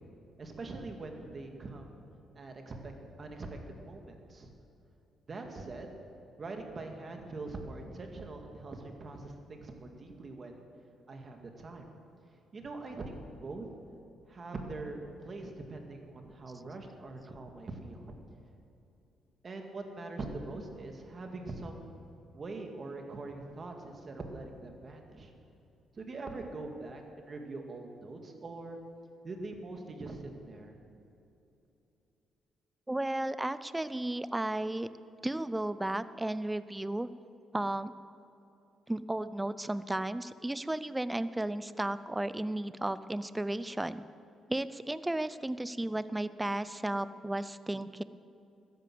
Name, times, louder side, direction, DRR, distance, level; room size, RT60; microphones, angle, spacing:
voice 1, 0.4-1.9 2.4-2.9 3.2-4.5 5.3-5.9 6.4-10.5 11.1-11.9 12.5-13.7 14.3-18.1 19.4-21.9 22.3-25.3 25.9-28.8 29.2-30.8, right 2 dB, 40° right, 3 dB, 2.1 m, -43 dB
voice 2, 32.9-34.9 35.2-37.1 37.5-37.9 38.9-44.0 44.5-48.0, right 1 dB, 10° right, 14 dB, 0.5 m, -34 dB
13.5 x 10.5 x 7.6 m, 2.8 s
cardioid pair, 90°, 0 cm